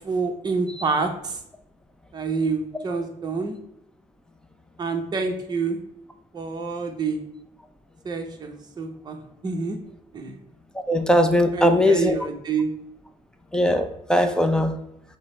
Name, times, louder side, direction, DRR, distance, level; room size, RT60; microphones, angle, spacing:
voice 1, 0.0-1.4 2.1-3.6 4.8-5.8 6.3-7.2 8.0-9.2 9.4-9.8 10.1-10.4 11.5-12.7, right 4 dB, 30° right, 4 dB, 0.7 m, -27 dB
voice 2, 10.9-12.1 13.5-14.8, left 1 dB, 5° left, 6 dB, 0.4 m, -19 dB
6.0 x 2.0 x 4.2 m, 0.77 s
cardioid pair, 125°, 14 cm